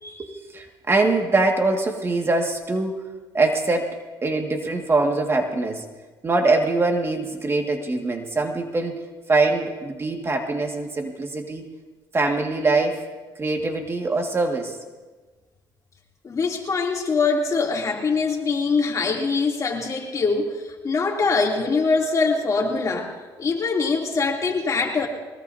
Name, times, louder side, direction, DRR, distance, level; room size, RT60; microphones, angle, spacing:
voice 1, 0.2-3.0 3.3-5.8 6.2-9.0 9.3-11.6 12.1-13.0 13.4-14.8, right 3 dB, 30° right, 3 dB, 1.9 m, -23 dB
voice 2, 16.2-23.1 23.4-25.1, left 4 dB, 40° left, 0 dB, 2.9 m, -23 dB
22.5 x 20.0 x 2.8 m, 1.3 s
supercardioid pair, 85°, 9 cm